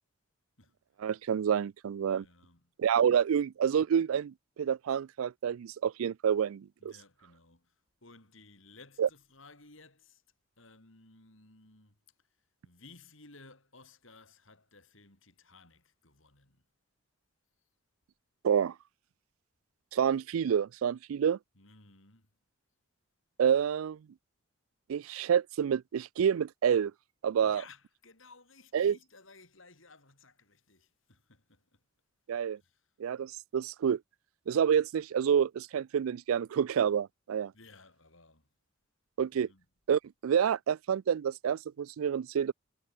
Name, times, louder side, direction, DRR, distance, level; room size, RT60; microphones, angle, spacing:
voice 1, 1.0-2.3 2.8-6.9 9.0-9.1 18.4-18.8 19.9-21.4 23.4-24.1 24.9-26.9 27.2-27.6 28.7-29.0 32.3-32.6 33.0-34.0 34.5-37.5 39.2-39.5 39.9-42.5, right 8 dB, 90° right, 0.4 m, -28 dB
voice 2, 2.1-2.6 6.8-7.7 8.0-10.2 10.6-12.0 12.6-16.6 21.6-22.3 27.4-31.8 32.6-32.8 37.5-38.5 39.3-39.6, left 3 dB, 75° left, 6.3 m, -57 dB
head